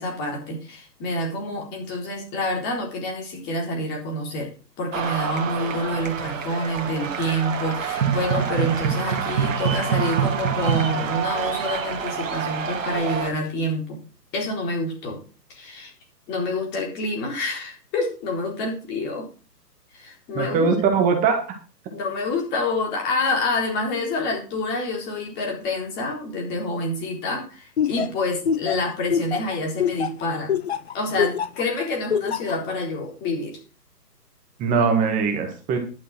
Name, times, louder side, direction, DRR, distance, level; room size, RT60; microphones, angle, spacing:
voice 1, 0.0-4.5 4.8-14.0 14.3-15.2 15.5-15.9 16.3-19.3 19.9-20.7 21.9-30.6 30.9-33.6, left 1 dB, 20° left, 1 dB, 4.0 m, -27 dB
sound 1, 4.9-13.3, right 7 dB, 50° right, 2.1 m, -26 dB
voice 2, 20.3-21.4 34.6-35.8, right 5 dB, 15° right, 4 dB, 1.7 m, -21 dB
Laughter, 27.8-31.6 32.1-32.6, left 7 dB, 40° left, 0.7 m, -24 dB
11.5 x 7.3 x 6.0 m, 0.36 s
figure-of-eight pair, 135°, 50 cm